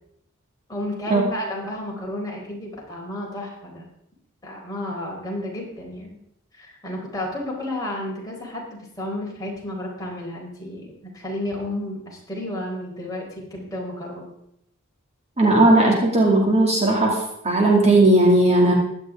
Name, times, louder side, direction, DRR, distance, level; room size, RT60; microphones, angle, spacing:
voice 1, 0.7-3.9 4.4-6.2 6.5-14.2, left 1 dB, 15° left, -4 dB, 4.2 m, -32 dB
voice 2, 15.4-18.7, right 2 dB, 30° right, -1 dB, 2.4 m, -17 dB
16.0 x 11.5 x 3.7 m, 0.77 s
head